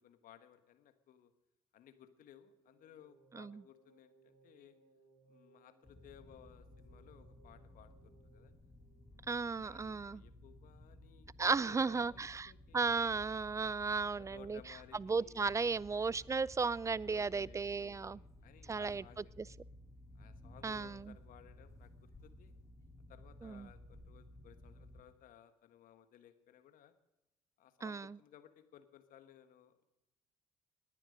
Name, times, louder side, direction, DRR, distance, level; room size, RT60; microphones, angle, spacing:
voice 1, 0.0-1.3 1.7-4.7 5.3-7.9 8.2-8.5 9.1-9.3 9.6-13.1 14.2-15.9 17.0-19.3 20.1-22.5 23.1-26.9 27.6-29.8, left 10 dB, 60° left, 9 dB, 1.5 m, -60 dB
sound 1, 2.4-9.6, right 3 dB, 65° right, 3.1 m, -68 dB
sound 2, 5.8-25.0, left 1 dB, 20° left, 2.7 m, -57 dB
voice 2, 9.3-10.2 11.4-14.6 15.0-18.2 18.7-19.0 19.4-19.5 20.6-21.1 23.4-23.7 27.8-28.2, right 4 dB, 20° right, 24 dB, 0.4 m, -35 dB
20.0 x 9.9 x 5.2 m, 0.95 s
hypercardioid pair, 50°, 16 cm